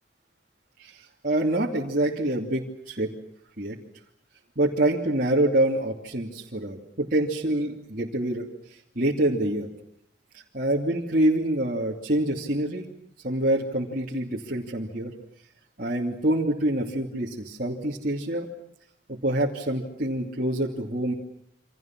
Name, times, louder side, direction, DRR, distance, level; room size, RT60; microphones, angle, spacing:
voice 1, 0.8-3.2 3.6-3.8 4.6-8.5 9.0-9.7 10.5-12.9 13.2-15.1 15.8-18.5 19.1-21.1, right 1 dB, 50° right, -3 dB, 2.8 m, -26 dB
29.0 x 26.0 x 6.1 m, 0.71 s
head